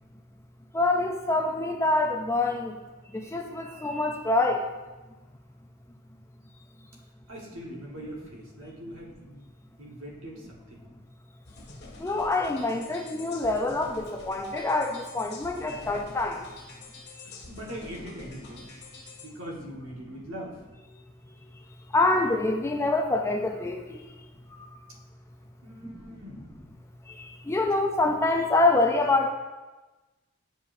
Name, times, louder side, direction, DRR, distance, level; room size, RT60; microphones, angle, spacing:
voice 1, 0.7-2.8 3.1-4.6 12.0-16.4 21.9-24.0 27.2-29.3, left 2 dB, 10° left, 3 dB, 0.4 m, -25 dB
voice 2, 7.3-9.4 9.8-10.8 17.5-18.6 19.2-20.6 25.6-26.6, equal, 65° right, -3 dB, 1.5 m, -41 dB
sound 1, 11.4-19.3, left 3 dB, 50° left, 1.5 m, -47 dB
9.1 x 5.5 x 2.6 m, 1.2 s
head